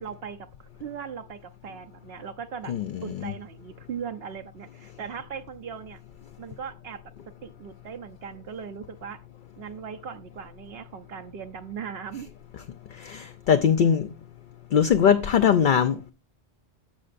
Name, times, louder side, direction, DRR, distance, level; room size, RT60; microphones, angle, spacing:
voice 1, 0.0-2.7 3.0-6.0 6.4-7.0 7.4-9.2 9.6-12.3, right 7 dB, 70° right, 0.8 m, -39 dB
voice 2, 2.7-3.3 13.0-14.1 14.7-16.1, left 7 dB, 60° left, 0.6 m, -21 dB
14.5 x 5.5 x 2.5 m
omnidirectional pair, 1.1 m